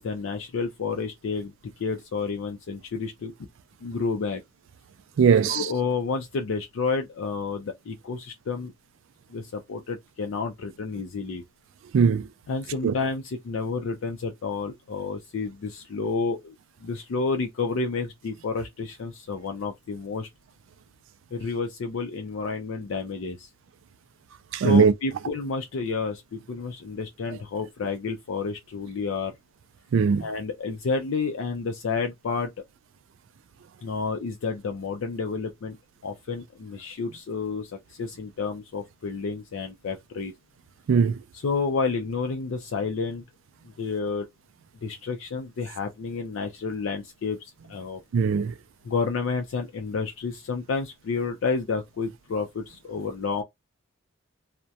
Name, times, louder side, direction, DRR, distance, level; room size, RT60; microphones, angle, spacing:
voice 1, 0.0-1.5 1.8-3.3 3.8-4.4 5.4-8.7 9.3-11.4 12.5-16.5 16.8-20.3 21.3-23.5 24.5-29.3 30.2-32.5 33.8-35.8 36.0-37.7 38.0-40.3 41.3-43.2 43.8-44.2 44.8-48.0 48.8-53.4, left 4 dB, 65° left, 0.4 m, -30 dB
voice 2, 5.2-5.7 11.9-12.3 12.8-12.9 24.5-24.9 29.9-30.2 40.9-41.2 48.1-48.5, right 6 dB, 60° right, 0.3 m, -19 dB
2.3 x 2.1 x 2.7 m
head